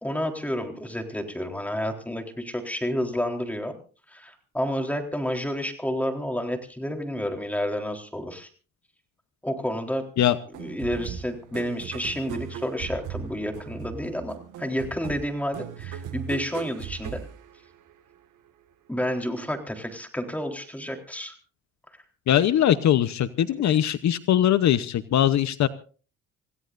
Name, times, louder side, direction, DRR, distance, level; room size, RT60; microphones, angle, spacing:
voice 1, 0.0-3.8 4.1-8.5 9.4-10.1 10.6-17.2 18.9-21.3 23.7-23.8, equal, 5° left, 3 dB, 3.9 m, -30 dB
sound 1, 10.5-18.1, right 8 dB, 85° right, 1.8 m, -38 dB
voice 2, 22.3-25.7, left 11 dB, 65° left, 13 dB, 0.9 m, -21 dB
27.5 x 16.5 x 2.6 m, 0.39 s
cardioid pair, 90°, 30 cm